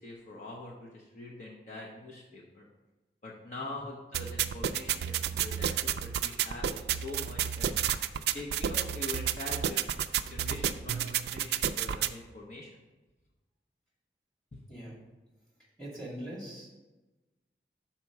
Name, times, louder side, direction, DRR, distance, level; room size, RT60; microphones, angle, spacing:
voice 1, 0.0-2.7 3.2-7.7 8.3-12.8, left 2 dB, 40° left, -3 dB, 0.9 m, -44 dB
voice 2, 3.6-3.9 14.7-15.0 15.8-16.8, right 1 dB, 5° left, -6 dB, 2.2 m, -42 dB
sound 1, 4.1-12.1, right 9 dB, 65° right, 0.3 m, -31 dB
5.9 x 4.4 x 6.0 m, 1.1 s
head